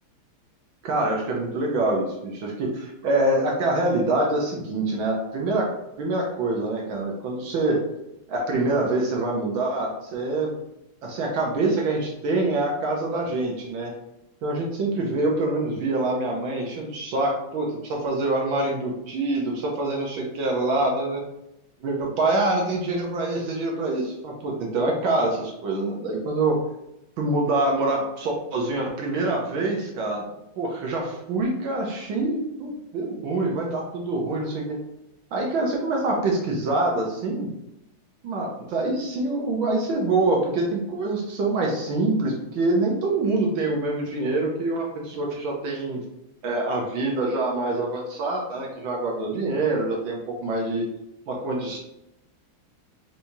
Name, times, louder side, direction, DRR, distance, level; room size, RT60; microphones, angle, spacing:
voice 1, 0.8-5.7 6.0-7.8 8.3-10.5 11.0-13.9 14.4-21.2 21.8-26.6 27.2-30.2 30.6-34.8 35.3-37.5 38.2-46.0 46.4-50.9 51.3-51.8, right 2 dB, 65° right, -1 dB, 1.6 m, -25 dB
5.7 x 3.3 x 2.7 m, 0.89 s
omnidirectional pair, 2.4 m